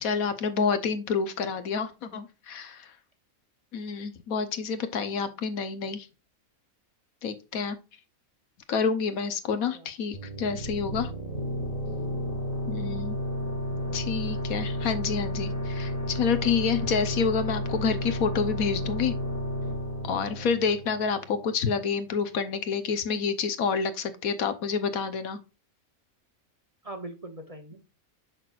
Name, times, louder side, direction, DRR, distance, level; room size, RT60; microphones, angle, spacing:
voice 1, 0.0-2.9 3.7-6.1 7.2-7.8 8.7-11.1 12.7-13.2 13.9-19.1 20.0-25.4, left 5 dB, 85° left, 10 dB, 1.4 m, -28 dB
sound 1, 10.1-21.5, equal, 30° left, 1.4 m, -32 dB
voice 2, 13.4-14.0 20.2-20.7 26.8-27.8, right 2 dB, 30° right, 5 dB, 0.9 m, -43 dB
6.5 x 6.0 x 2.4 m, 0.29 s
omnidirectional pair, 1.5 m